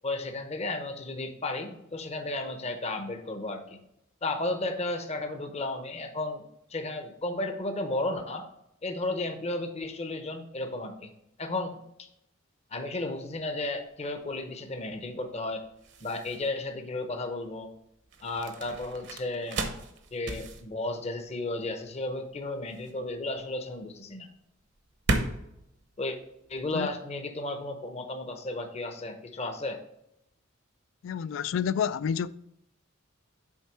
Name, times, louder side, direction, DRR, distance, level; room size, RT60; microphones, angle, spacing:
voice 1, 0.0-3.8 4.2-8.5 8.8-11.1 11.4-12.1 12.7-15.7 16.0-17.7 18.2-19.7 20.1-24.3 26.0-26.2 26.5-29.8, left 2 dB, 30° left, 0.7 m, -34 dB
sound 1, 13.1-26.9, right 2 dB, 60° right, 0.9 m, -37 dB
voice 2, 31.0-32.3, left 7 dB, 65° left, 0.3 m, -29 dB
7.3 x 4.5 x 4.7 m
head